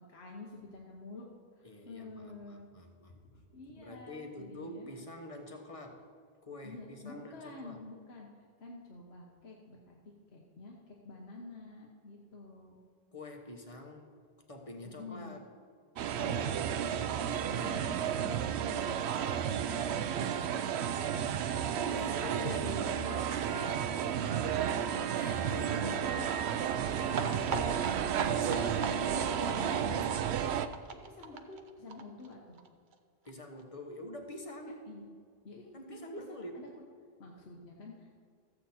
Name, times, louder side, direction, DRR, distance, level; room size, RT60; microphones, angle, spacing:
voice 1, 0.0-2.7 3.3-4.9 6.6-8.3 8.6-10.0 10.3-12.8 15.0-15.4 16.1-20.1 20.8-21.5 21.8-22.9 23.5-24.1 24.6-24.7 25.1-27.9 28.5-29.2 31.0-32.6 34.1-34.3 34.9-35.1 35.4-36.7 37.2-38.1, left 3 dB, 80° left, -1 dB, 1.4 m, -48 dB
voice 2, 1.6-3.2 3.7-6.1 6.4-7.8 13.1-14.2 14.5-15.4 21.9-23.9 26.5-27.5 28.3-30.1 33.2-34.8 35.7-36.7, left 1 dB, 35° left, 3 dB, 1.2 m, -45 dB
sound 1, 16.0-30.7, right 8 dB, 85° right, 0.8 m, -32 dB
sound 2, 27.1-32.7 32.9-33.0 33.3-33.4 33.6-33.7, right 4 dB, 50° right, 0.8 m, -40 dB
14.0 x 8.1 x 4.3 m, 2.1 s
omnidirectional pair, 1.1 m